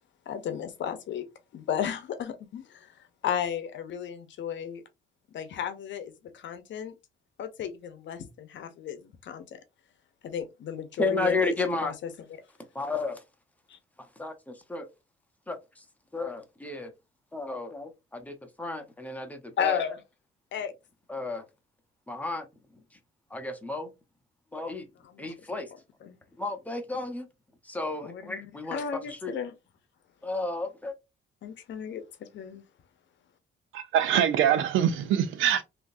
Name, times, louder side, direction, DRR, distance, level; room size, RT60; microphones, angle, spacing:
voice 1, 0.3-1.2 1.5-4.8 5.3-6.9 7.4-9.6 10.2-12.1 13.7-13.8 19.6-20.0 20.5-20.7 25.0-25.3 26.0-26.2 28.0-29.5 31.4-32.6, left 8 dB, 65° left, 0.8 m, -34 dB
voice 2, 11.0-11.9 12.7-13.2 14.0-14.9 15.5-15.8 16.1-16.9 17.3-19.8 21.1-21.4 22.1-22.5 23.3-23.9 24.5-24.9 25.2-25.7 26.4-27.3 27.6-29.4 30.2-31.0, left 3 dB, 5° left, 0.9 m, -32 dB
voice 3, 33.7-35.6, right 9 dB, 85° right, 0.6 m, -24 dB
3.5 x 2.8 x 2.6 m
cardioid pair, 90°, 20 cm